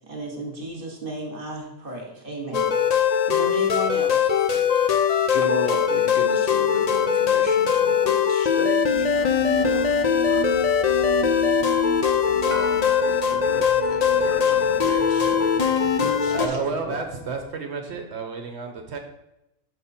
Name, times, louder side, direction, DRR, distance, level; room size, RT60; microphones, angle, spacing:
voice 1, 0.1-2.7 3.3-4.4, right 1 dB, 45° right, 1 dB, 1.5 m, -33 dB
sound 1, 2.5-16.5, left 7 dB, 75° left, 0.3 m, -21 dB
voice 2, 4.5-5.0 5.3-10.7 12.2-17.0, left 2 dB, 50° left, 2 dB, 0.9 m, -35 dB
sound 2, 8.9-17.5, right 3 dB, 25° right, 0.9 m, -34 dB
voice 3, 16.3-19.0, right 4 dB, 60° right, 4 dB, 1.0 m, -31 dB
6.1 x 5.4 x 4.3 m, 0.89 s
omnidirectional pair, 1.3 m